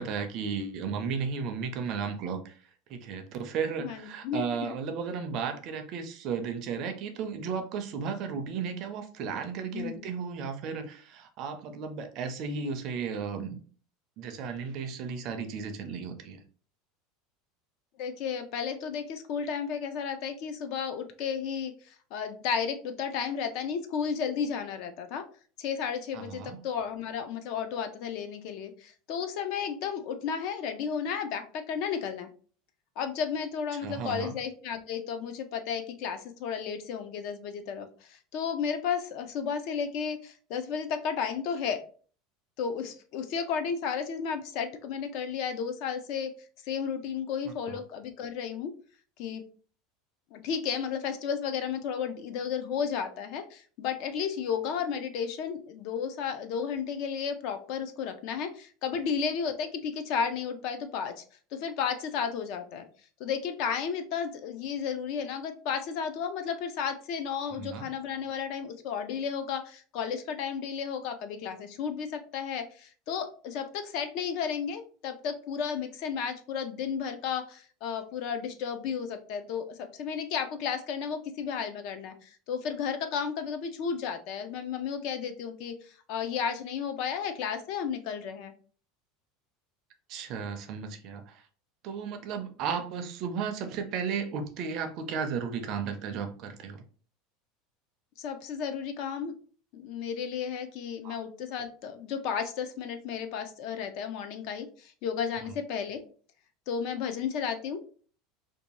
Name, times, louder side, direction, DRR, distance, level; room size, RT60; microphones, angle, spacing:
voice 1, 0.0-2.6 2.9-13.6 14.2-16.4 26.1-26.6 33.8-34.3 47.7-47.8 67.6-67.9 90.1-91.4 91.8-96.8 101.0-101.2, right 6 dB, 40° right, 7 dB, 0.4 m, -34 dB
voice 2, 3.8-4.7 9.7-10.1 18.0-25.3 25.6-32.3 33.0-41.8 42.6-46.3 46.7-48.7 49.2-49.4 50.3-61.2 61.5-62.8 63.2-88.5 98.2-99.3 99.7-106.0 106.7-107.8, left 7 dB, 50° left, 8 dB, 0.4 m, -33 dB
2.6 x 2.2 x 2.9 m, 0.42 s
supercardioid pair, 165°, 0 cm